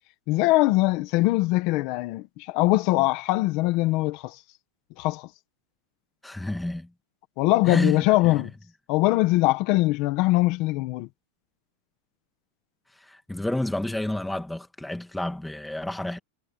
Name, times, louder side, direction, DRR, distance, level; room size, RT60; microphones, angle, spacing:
voice 1, 0.3-4.4 5.0-5.3 7.4-8.5 8.9-11.1, left 19 dB, 40° left, 1.5 m, -22 dB
voice 2, 6.2-6.9 7.7-8.4 13.0-16.2, left 1 dB, 5° left, 1.9 m, -30 dB
supercardioid pair, 170°, 0 cm